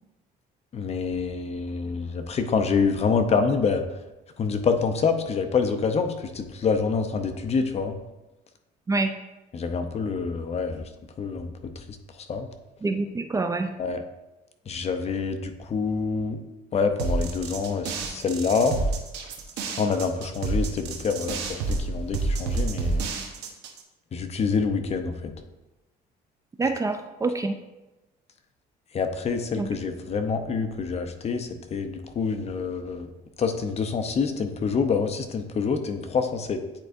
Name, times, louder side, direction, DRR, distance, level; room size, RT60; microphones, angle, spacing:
voice 1, 0.7-3.8 4.4-8.0 9.5-10.8 11.2-11.5 12.3-12.5 13.8-14.0 14.7-16.4 16.7-18.8 19.8-23.0 24.1-25.3 28.9-33.1 33.4-36.6, left 5 dB, 40° left, 7 dB, 0.7 m, -26 dB
voice 2, 12.8-13.7 26.6-27.6 29.6-29.7, right 3 dB, 20° right, 6 dB, 0.4 m, -26 dB
sound 1, 17.0-23.8, right 3 dB, 85° right, 1.1 m, -29 dB
9.1 x 4.6 x 2.6 m, 1.0 s
cardioid pair, 110°, 17 cm